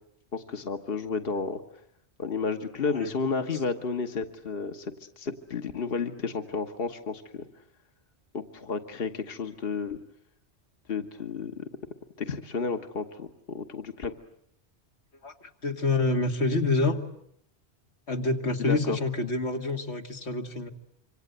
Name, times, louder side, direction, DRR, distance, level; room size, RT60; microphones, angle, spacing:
voice 1, 0.3-1.6 2.2-7.5 8.3-10.0 10.9-11.7 12.2-14.1 18.6-19.0, left 5 dB, 60° left, 6 dB, 1.6 m, -32 dB
voice 2, 15.2-17.0 18.1-20.7, left 3 dB, 90° left, 4 dB, 2.4 m, -27 dB
27.0 x 25.5 x 8.1 m, 0.71 s
omnidirectional pair, 1.1 m